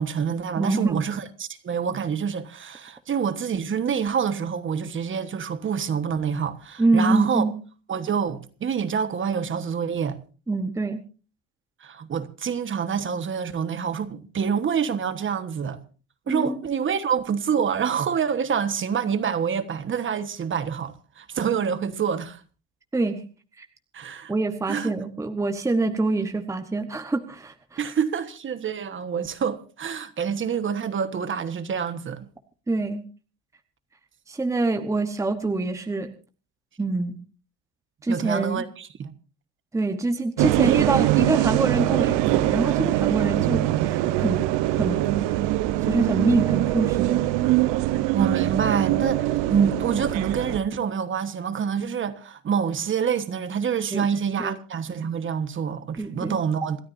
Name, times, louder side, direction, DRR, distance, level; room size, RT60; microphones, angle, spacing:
voice 1, 0.0-7.4 7.9-10.2 11.8-15.8 16.3-22.4 23.9-24.3 24.7-24.9 27.8-32.3 38.1-39.1 48.1-56.8, right 7 dB, 30° right, 1.3 m, -27 dB
voice 2, 0.6-1.0 6.8-7.5 10.5-11.0 16.3-16.6 22.9-23.2 23.6-23.7 24.3-27.8 32.7-33.0 34.3-36.1 36.8-37.2 38.0-38.6 39.7-44.4 44.8-45.3 45.9-47.3 53.9-54.0 54.4-54.5 56.0-56.4, right 2 dB, 5° right, 1.1 m, -25 dB
sound 1, 40.4-50.6, right 15 dB, 90° right, 1.0 m, -23 dB
27.5 x 13.0 x 2.7 m
cardioid pair, 150°, 41 cm